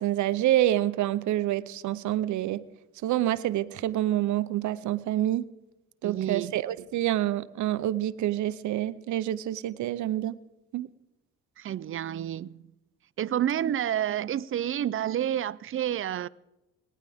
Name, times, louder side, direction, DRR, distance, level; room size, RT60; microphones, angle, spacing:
voice 1, 0.0-2.6 3.0-5.5 6.0-10.3 10.7-10.9, right 13 dB, 75° right, 0.7 m, -27 dB
voice 2, 6.0-6.5 11.6-12.6 13.2-16.3, right 11 dB, 45° right, 0.4 m, -29 dB
19.5 x 18.0 x 3.5 m
cardioid pair, 90°, 30 cm